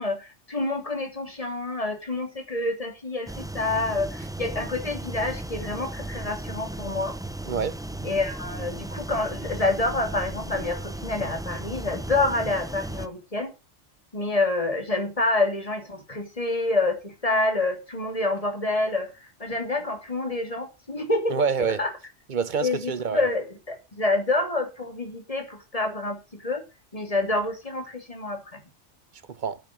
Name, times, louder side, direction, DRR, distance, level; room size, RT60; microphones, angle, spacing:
voice 1, 0.0-7.2 8.0-13.5 14.1-21.4 21.8-21.9 22.6-23.4 23.9-26.6 26.9-28.6, left 2 dB, 30° left, 3.2 m, -27 dB
sound 1, 3.3-13.1, right 1 dB, 5° right, 0.4 m, -36 dB
voice 2, 7.5-7.8 21.3-21.8 22.3-23.2 29.3-29.6, right 6 dB, 45° right, 0.8 m, -26 dB
10.5 x 8.8 x 6.2 m
omnidirectional pair, 1.2 m